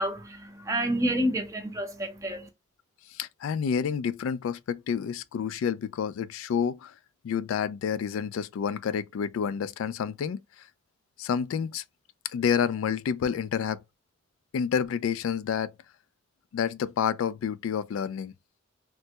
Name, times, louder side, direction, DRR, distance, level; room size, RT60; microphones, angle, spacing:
voice 1, 0.0-2.5, equal, 15° right, 0.6 m, -29 dB
voice 2, 3.1-6.9 7.2-10.7 11.2-11.8 12.2-13.8 14.5-15.7 16.5-18.3, left 7 dB, 85° left, 0.3 m, -29 dB
3.2 x 2.1 x 2.7 m
head